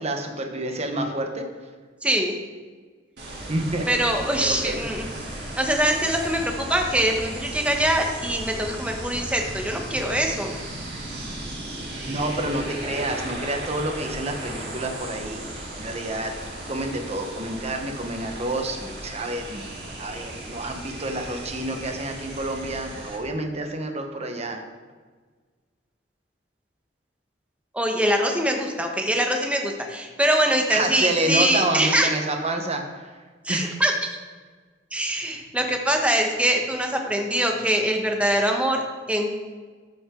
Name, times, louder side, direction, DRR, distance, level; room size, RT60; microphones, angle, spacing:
voice 1, 0.0-1.5 3.5-3.9 4.4-4.8 12.1-16.3 16.7-19.6 20.0-24.6 30.7-33.2 33.5-33.8, right 1 dB, 35° right, 4 dB, 1.1 m, -28 dB
voice 2, 2.0-2.3 3.9-5.1 5.6-10.5 27.7-32.1 33.4-34.2 34.9-38.8 39.1-39.3, right 1 dB, 5° right, 2 dB, 1.1 m, -23 dB
sound 1, 3.2-23.2, right 1 dB, 65° right, 2.6 m, -36 dB
13.5 x 6.1 x 3.8 m, 1.5 s
head